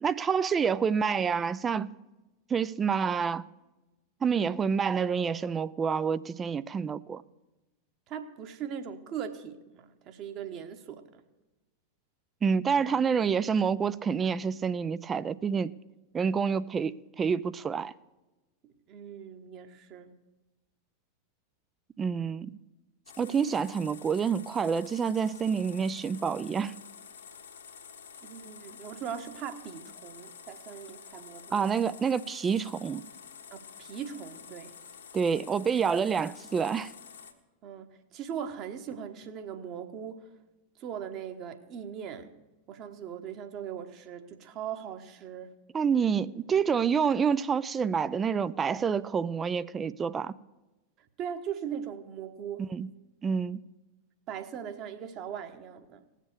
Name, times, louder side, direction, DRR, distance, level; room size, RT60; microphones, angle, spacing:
voice 1, 0.0-1.9 2.5-3.5 4.2-7.2 12.4-15.7 16.1-17.9 22.0-22.6 23.2-26.7 31.5-33.0 35.1-36.9 45.7-50.4 52.6-52.9 53.2-53.6, right 6 dB, 20° right, 0.4 m, -28 dB
voice 2, 8.1-11.2 18.6-20.1 28.2-32.0 33.5-34.7 37.6-40.3 40.8-42.3 42.7-45.5 51.2-52.7 54.3-56.0, right 8 dB, 35° right, 1.2 m, -40 dB
sound 1, 23.1-37.3, left 7 dB, 65° left, 1.5 m, -49 dB
18.0 x 7.5 x 6.9 m
figure-of-eight pair, 90°, 0 cm